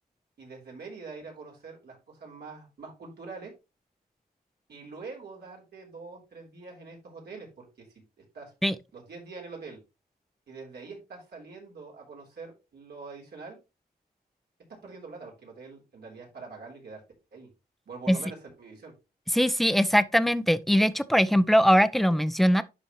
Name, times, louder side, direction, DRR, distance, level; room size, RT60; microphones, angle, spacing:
voice 1, 0.4-3.5 4.7-7.9 8.2-8.5 8.9-9.8 10.5-13.6 14.8-17.0 17.3-17.5 17.9-18.9, right 4 dB, 80° right, 3.5 m, -44 dB
voice 2, 19.3-22.6, equal, ahead, 0.5 m, -21 dB
11.0 x 4.3 x 3.1 m
wide cardioid pair, 110°, 17 cm